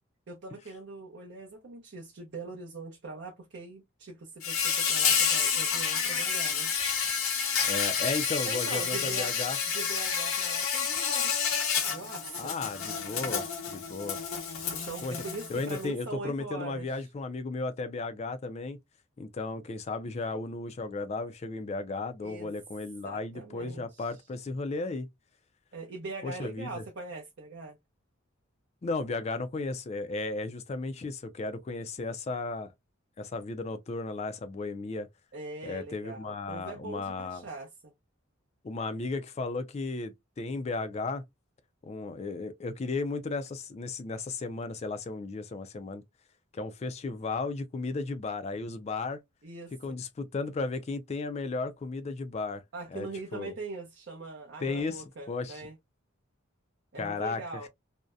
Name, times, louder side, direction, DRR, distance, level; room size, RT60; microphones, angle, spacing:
voice 1, 0.3-6.7 8.4-9.3 9.7-11.4 11.7-12.5 14.7-16.9 22.2-22.5 23.0-24.1 25.7-27.8 35.3-37.9 49.4-50.0 52.7-55.8 56.9-57.7, right 3 dB, 55° right, 0.5 m, -42 dB
Insect, 4.4-15.8, left 6 dB, 85° left, 0.8 m, -29 dB
voice 2, 7.7-9.6 12.4-14.2 15.0-15.2 15.5-18.8 19.2-25.1 26.2-26.8 28.8-32.7 33.2-35.1 35.6-37.5 38.6-41.2 41.8-46.0 46.5-49.2 49.8-52.6 52.9-53.5 54.6-55.6 57.0-57.7, left 3 dB, 30° left, 0.3 m, -35 dB
2.6 x 2.1 x 2.3 m
head